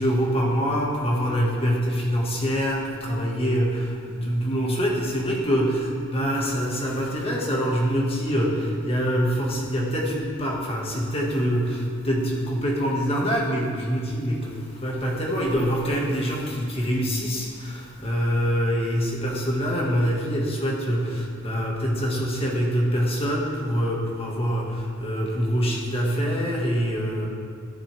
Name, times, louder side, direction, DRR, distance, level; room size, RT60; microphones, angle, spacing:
voice 1, 0.0-27.3, equal, 25° left, -2 dB, 1.6 m, -25 dB
14.0 x 7.5 x 3.4 m, 2.1 s
head